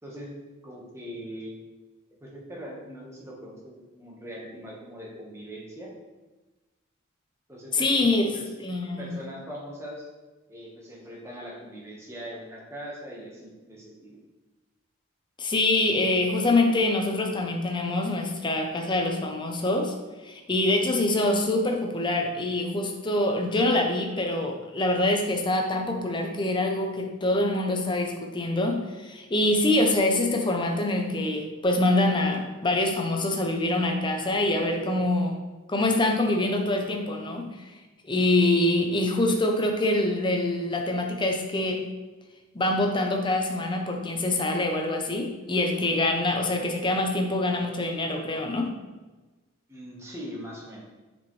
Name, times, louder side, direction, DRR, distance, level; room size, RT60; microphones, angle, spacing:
voice 1, 0.0-0.4 0.6-1.5 2.2-5.9 7.5-8.5 9.0-10.1 10.5-14.2 49.7-50.9, equal, 15° right, -3 dB, 1.2 m, -41 dB
voice 2, 7.7-8.3 8.6-9.1 15.4-19.9 20.2-35.3 35.7-37.6 38.0-41.9 42.5-48.7, left 2 dB, 20° left, 2 dB, 0.6 m, -25 dB
7.1 x 4.4 x 3.2 m, 1.2 s
head